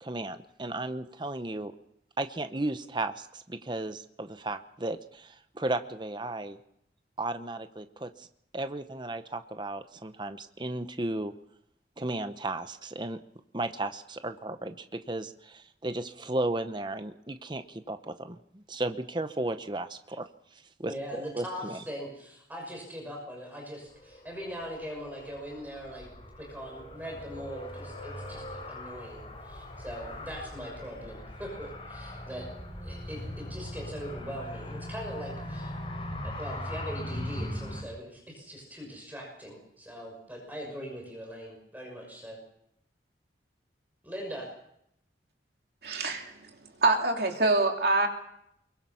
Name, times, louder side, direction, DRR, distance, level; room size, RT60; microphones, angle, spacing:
voice 1, 0.0-1.7 2.2-6.6 7.2-8.3 8.5-11.3 12.0-13.2 13.5-20.9 21.3-21.8, right 2 dB, 25° right, 9 dB, 0.9 m, -34 dB
voice 2, 20.8-26.1 26.4-32.5 32.8-35.8 36.2-42.4 44.0-44.5, equal, 10° right, 0 dB, 6.1 m, -41 dB
Car, 23.8-37.8, left 1 dB, 30° left, 5.4 m, -40 dB
voice 3, 45.8-46.3 46.8-48.1, right 2 dB, 60° right, 2 dB, 3.0 m, -25 dB
24.5 x 22.5 x 5.7 m, 0.76 s
head